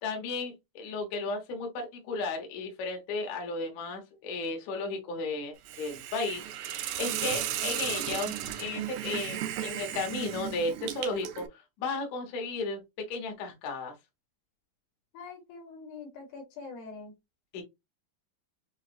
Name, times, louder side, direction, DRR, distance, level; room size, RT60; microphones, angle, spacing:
voice 1, 0.0-6.4 6.7-11.5 11.8-13.9 17.5-17.6, left 3 dB, 65° left, 2.2 m, -34 dB
Hiss, 5.7-11.5, right 11 dB, 85° right, 1.6 m, -35 dB
voice 2, 15.1-17.1, left 4 dB, 80° left, 3.3 m, -44 dB
6.8 x 2.4 x 2.4 m
omnidirectional pair, 4.1 m